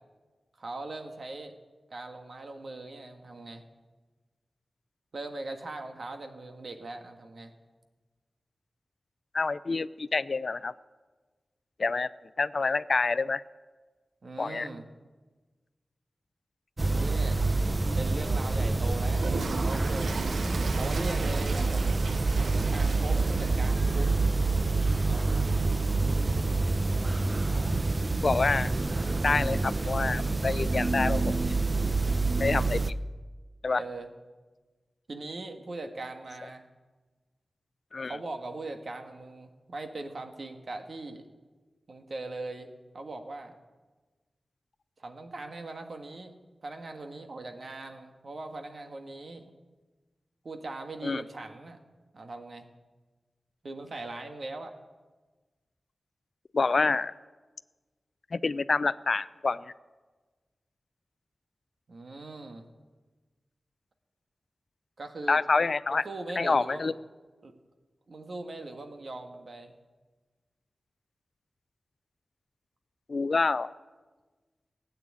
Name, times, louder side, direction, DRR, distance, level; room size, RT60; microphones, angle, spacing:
voice 1, 0.6-1.5 1.9-3.6 5.1-7.5 14.2-14.8 16.8-17.6 18.0-20.1 20.7-21.8 22.3-24.3 25.1-25.7 33.7-34.1 35.1-36.7 38.0-41.2 41.9-42.7 42.9-43.5 45.0-46.3 46.6-49.4 50.4-51.8 52.1-52.7 53.6-54.8 61.9-62.6 65.0-65.4 65.9-67.0 67.4-67.5 68.1-69.7, right 2 dB, 60° right, 5 dB, 1.6 m, -40 dB
voice 2, 9.3-10.7 11.8-12.1 12.4-13.4 14.4-14.7 28.2-28.7 29.2-31.5 32.4-32.9 33.6-33.8 37.9-38.1 51.0-51.2 56.5-57.1 58.3-59.7 65.3-66.0 66.4-66.9 73.1-73.7, left 4 dB, 55° left, 16 dB, 0.4 m, -27 dB
sound 1, 16.8-32.9, right 3 dB, 30° right, 0.6 m, -27 dB
Toilet flush, 19.1-26.6, right 4 dB, 90° right, 0.8 m, -40 dB
16.5 x 8.9 x 8.7 m, 1.3 s
wide cardioid pair, 80°, 0 cm